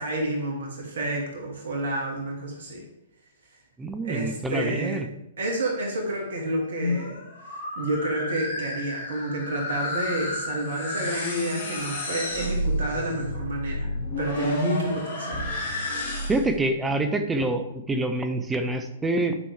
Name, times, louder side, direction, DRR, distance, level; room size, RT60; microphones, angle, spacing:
voice 1, 0.0-2.8 4.0-5.0 5.4-7.2 7.8-13.9 14.2-15.5, right 1 dB, 60° right, 0 dB, 2.3 m, -29 dB
voice 2, 3.8-5.1 16.3-19.4, right 2 dB, 10° right, 7 dB, 0.7 m, -26 dB
sound 1, 6.6-16.6, left 1 dB, 50° left, 2.2 m, -31 dB
9.9 x 6.1 x 3.4 m, 0.85 s
figure-of-eight pair, 115°, 0 cm